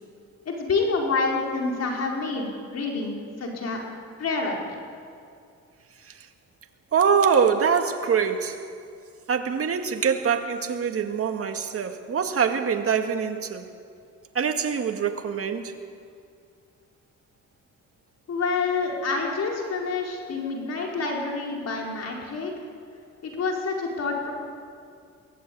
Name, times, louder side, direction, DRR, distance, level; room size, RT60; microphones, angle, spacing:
voice 1, 0.4-3.8 4.2-4.6 18.3-22.5 23.2-24.3, left 4 dB, 55° left, -1 dB, 4.9 m, -27 dB
voice 2, 6.9-8.7 9.3-13.7 14.3-15.7, right 6 dB, 50° right, 5 dB, 2.1 m, -24 dB
23.0 x 17.5 x 8.6 m, 2.3 s
cardioid pair, 90°, 30 cm